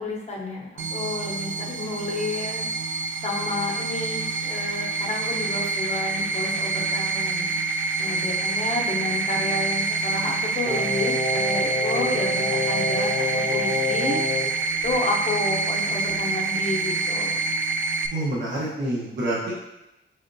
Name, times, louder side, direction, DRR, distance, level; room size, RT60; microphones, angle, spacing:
voice 1, 0.0-2.6 3.2-7.5 8.0-14.2 14.8-17.4, left 2 dB, 35° left, -1 dB, 0.7 m, -30 dB
sound 1, 0.8-18.1, right 4 dB, 75° right, 0.4 m, -27 dB
Singing, 10.7-14.5 14.8-14.9, left 2 dB, 10° right, 0.6 m, -27 dB
voice 2, 18.1-19.6, right 1 dB, 60° right, -7 dB, 0.9 m, -27 dB
5.4 x 3.4 x 2.6 m, 0.93 s
wide cardioid pair, 170°, 20 cm